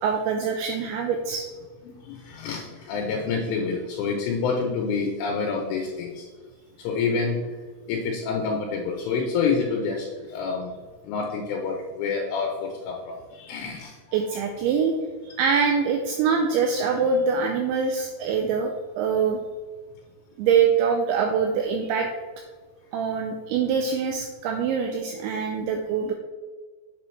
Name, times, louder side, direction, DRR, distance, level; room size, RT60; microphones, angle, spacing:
voice 1, 0.0-1.5 14.1-14.9 15.2-19.4 20.4-22.1 22.9-26.1, right 6 dB, 90° right, 3 dB, 2.6 m, -24 dB
voice 2, 1.9-6.3 6.8-7.4 7.9-10.7 11.0-14.0, left 5 dB, 80° left, 0 dB, 3.1 m, -28 dB
7.8 x 7.6 x 3.2 m, 1.4 s
omnidirectional pair, 6.0 m